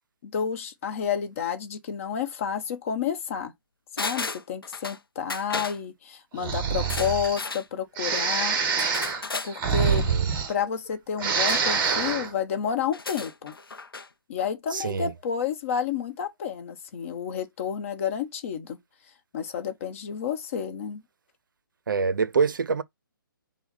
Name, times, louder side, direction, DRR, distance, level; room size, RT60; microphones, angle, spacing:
voice 1, 0.2-3.5 4.0-8.6 9.4-10.0 10.5-13.5 14.3-18.8 19.3-21.0, left 7 dB, 35° left, 0.9 m, -30 dB
sound 1, 4.0-5.0 5.3-5.8 6.8-7.7 8.8-9.5 11.5-11.9 12.9-14.1 14.4-14.5, left 4 dB, 85° left, 0.6 m, -34 dB
Breathing, 6.4-7.4 8.0-10.9 11.1-12.3, right 6 dB, 20° right, 0.9 m, -26 dB
voice 2, 9.8-10.3 14.7-15.1 21.9-22.8, right 5 dB, 65° right, 0.5 m, -26 dB
5.7 x 2.1 x 4.0 m
figure-of-eight pair, 140°, 12 cm